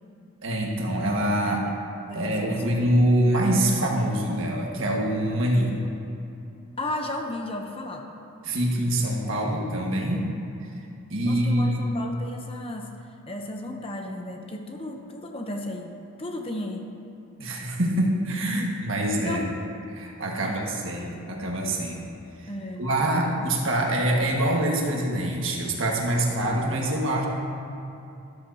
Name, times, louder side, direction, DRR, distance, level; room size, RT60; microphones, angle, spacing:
voice 1, 0.4-1.6 2.1-5.8 8.4-10.2 11.1-11.8 17.4-19.4 19.9-22.0 22.4-22.5 22.8-27.3, right 1 dB, 60° right, -1 dB, 1.7 m, -25 dB
voice 2, 2.1-3.1 6.8-8.1 11.3-12.9 13.3-15.9 16.2-16.9 18.4-18.7 19.1-19.5 20.4-20.6 22.5-22.9, left 1 dB, 25° left, 3 dB, 0.8 m, -34 dB
14.0 x 13.0 x 2.8 m, 2.7 s
head